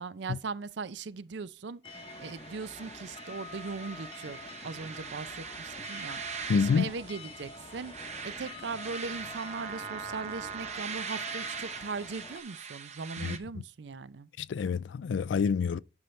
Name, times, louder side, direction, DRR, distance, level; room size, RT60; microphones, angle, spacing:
voice 1, 0.0-4.4 4.6-14.3, right 4 dB, 70° right, 0.5 m, -39 dB
sound 1, 1.8-12.4, left 3 dB, 30° left, 0.8 m, -47 dB
sound 2, 1.9-13.4, right 6 dB, 35° right, 0.9 m, -41 dB
voice 2, 6.5-6.9 13.2-13.4 14.4-15.8, left 5 dB, 75° left, 0.3 m, -27 dB
9.6 x 5.6 x 3.2 m
head